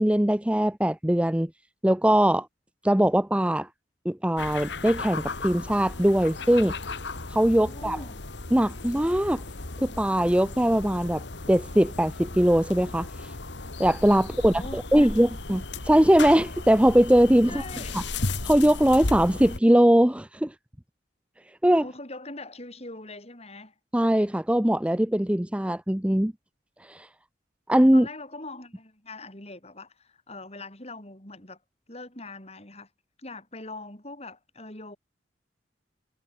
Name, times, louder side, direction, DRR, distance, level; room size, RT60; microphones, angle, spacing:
voice 1, 0.0-1.5 1.8-2.5 2.8-3.7 4.0-6.8 7.3-8.0 8.5-9.4 9.8-13.3 13.8-17.6 17.9-18.0 18.4-20.5 21.6-21.8 23.9-26.3 26.8-27.1 27.7-28.1, equal, 5° right, 0.7 m, -21 dB
sound 1, 4.4-19.6, left 3 dB, 70° left, 2.0 m, -35 dB
voice 2, 7.7-8.2 14.5-15.3 17.5-18.0 21.8-23.7 27.9-31.6 31.9-32.9 33.2-35.0, left 2 dB, 35° left, 7.4 m, -42 dB
head